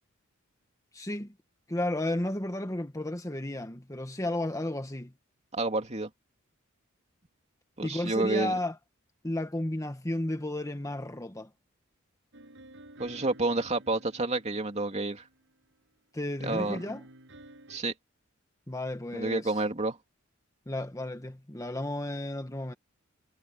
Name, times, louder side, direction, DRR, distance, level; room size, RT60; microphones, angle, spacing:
voice 1, 0.9-1.3 1.7-5.1 7.8-8.8 9.2-11.5 16.1-17.0 18.7-19.5 20.7-22.7, left 1 dB, 15° left, 1.4 m, -33 dB
voice 2, 5.5-6.1 7.8-8.5 13.0-15.2 16.4-16.9 17.7-17.9 19.1-20.0, right 2 dB, 30° right, 2.8 m, -29 dB
sound 1, 12.3-15.5 16.4-17.8, right 1 dB, 60° right, 7.8 m, -51 dB
head